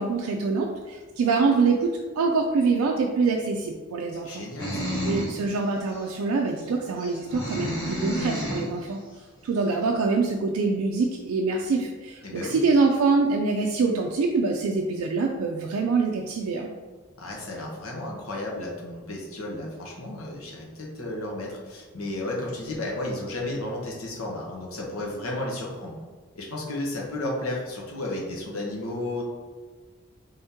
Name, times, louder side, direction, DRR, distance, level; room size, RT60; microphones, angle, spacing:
voice 1, 0.0-4.4 5.0-9.0 9.4-16.7, right 4 dB, 90° right, 1 dB, 0.4 m, -25 dB
voice 2, 4.1-4.9 12.2-12.6 17.2-25.9 26.4-29.2, left 1 dB, 85° left, -2 dB, 0.9 m, -33 dB
sound 1, 4.6-5.4 5.9-6.0 7.0-8.7, equal, 20° left, 1.1 m, -30 dB
3.5 x 2.8 x 3.5 m, 1.4 s
head